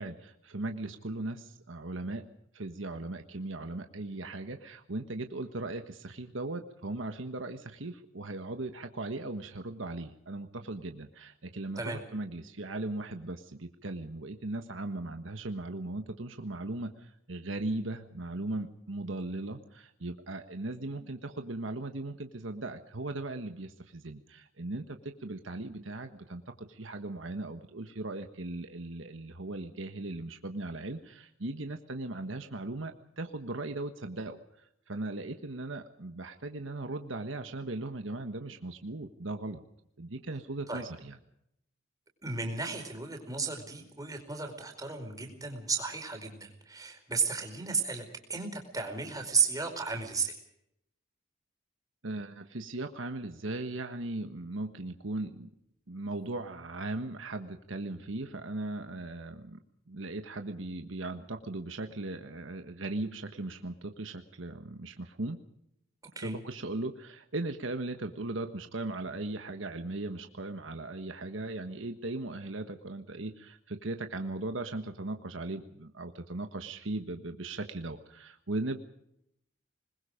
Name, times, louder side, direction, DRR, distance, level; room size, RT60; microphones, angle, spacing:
voice 1, 0.0-2.2 2.5-39.6 40.0-41.2 52.0-55.5 55.9-59.6 59.9-65.4 66.2-78.8, right 2 dB, 70° right, 6 dB, 1.4 m, -38 dB
voice 2, 42.2-50.3 66.1-66.4, right 5 dB, 20° right, 3 dB, 4.8 m, -33 dB
27.0 x 21.0 x 5.1 m, 0.76 s
head